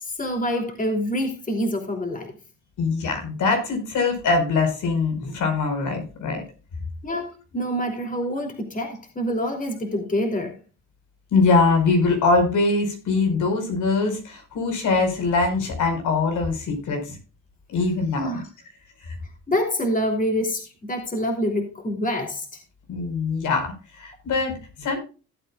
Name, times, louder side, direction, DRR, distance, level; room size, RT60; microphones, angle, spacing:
voice 1, 0.0-2.3 7.0-10.5 18.2-18.4 19.5-22.5, equal, 25° left, 3.0 m, -26 dB
voice 2, 2.8-6.4 11.3-17.2 17.7-18.3 22.9-25.0, left 3 dB, 80° left, 4.9 m, -22 dB
16.5 x 8.4 x 2.4 m
cardioid pair, 90°, 30 cm